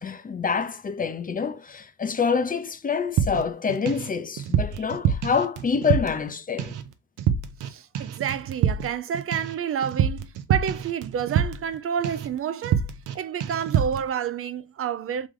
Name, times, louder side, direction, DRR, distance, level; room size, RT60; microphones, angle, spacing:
voice 1, 0.0-6.8, left 6 dB, 30° left, 0.6 m, -26 dB
sound 1, 3.2-4.1 4.4-6.3 6.6-6.9 7.2-7.7 7.9-11.8 12.0-12.3 12.6-13.1 13.4-14.0, right 8 dB, 85° right, 0.7 m, -26 dB
voice 2, 7.6-15.3, right 8 dB, 50° right, 0.4 m, -29 dB
3.3 x 3.1 x 3.6 m
cardioid pair, 90°, 30 cm